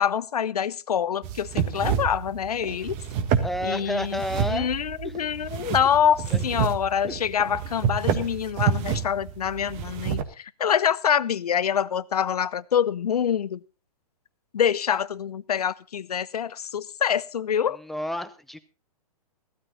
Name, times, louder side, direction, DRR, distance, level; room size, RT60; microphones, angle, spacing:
voice 1, 0.0-3.0 3.6-4.2 4.5-13.6 14.5-17.8, left 8 dB, 85° left, 19 dB, 0.7 m, -25 dB
sound 1, 1.2-10.2, right 8 dB, 35° right, 1.5 m, -28 dB
voice 2, 3.4-4.7 5.0-5.1 6.3-6.4 17.7-18.6, left 1 dB, ahead, 11 dB, 0.8 m, -30 dB
15.5 x 13.0 x 4.0 m, 0.31 s
hypercardioid pair, 140°, 19 cm